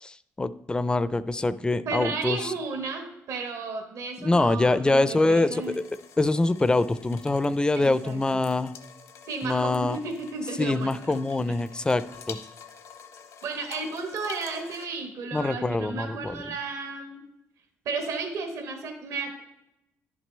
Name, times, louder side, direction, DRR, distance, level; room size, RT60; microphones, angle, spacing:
voice 1, 0.0-2.5 4.2-5.8 6.2-8.7 9.4-10.0 10.6-12.4 15.3-16.4, left 2 dB, 15° left, 15 dB, 0.4 m, -24 dB
voice 2, 1.8-5.8 7.7-8.2 9.2-11.0 11.5-11.6 13.4-17.2 17.8-19.4, right 4 dB, 75° right, 4 dB, 1.3 m, -33 dB
sound 1, 5.6-14.9, left 7 dB, 70° left, 0.9 m, -47 dB
10.5 x 6.0 x 3.3 m, 0.88 s
cardioid pair, 80°, 5 cm